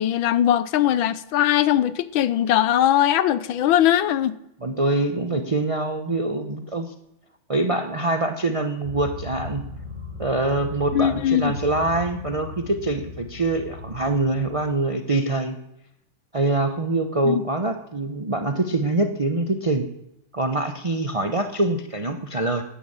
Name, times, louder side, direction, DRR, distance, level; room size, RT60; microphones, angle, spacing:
voice 1, 0.0-4.4 10.9-11.6 17.2-17.4, left 11 dB, 75° left, 16 dB, 1.6 m, -20 dB
voice 2, 4.6-6.9 7.5-9.6 10.2-15.6 16.3-19.9 20.3-22.6, right 2 dB, 40° right, 7 dB, 0.4 m, -24 dB
sound 1, 8.8-14.7, left 2 dB, 25° right, 2.7 m, -37 dB
13.0 x 11.0 x 8.8 m, 0.82 s
omnidirectional pair, 2.2 m